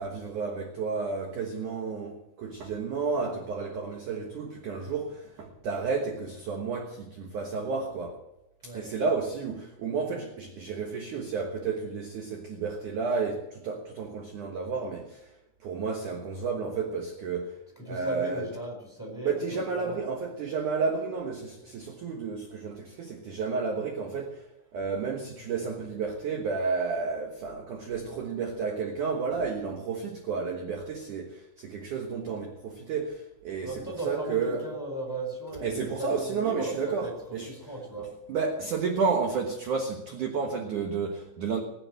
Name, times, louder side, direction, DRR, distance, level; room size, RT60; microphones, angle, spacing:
voice 1, 0.0-8.2 8.6-15.3 15.6-17.6 17.9-18.5 19.2-34.7 35.6-37.5 38.3-41.6, right 5 dB, 65° right, 3 dB, 2.1 m, -31 dB
voice 2, 8.6-9.0 17.8-20.0 33.6-37.1 37.5-38.1, right 2 dB, 5° left, 0 dB, 4.0 m, -37 dB
20.5 x 8.9 x 7.6 m, 0.89 s
omnidirectional pair, 5.3 m